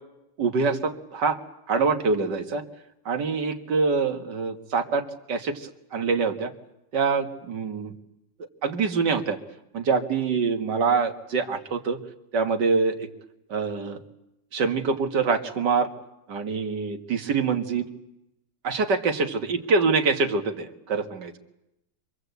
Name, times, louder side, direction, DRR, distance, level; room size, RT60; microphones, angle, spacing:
voice 1, 0.4-1.4 1.7-2.6 3.1-6.5 6.9-7.9 8.6-9.4 9.7-12.0 12.3-13.1 13.5-14.0 14.5-15.9 16.3-17.9 18.6-21.3, right 4 dB, 80° right, 6 dB, 2.2 m, -25 dB
26.0 x 23.0 x 8.2 m, 0.88 s
omnidirectional pair, 1.8 m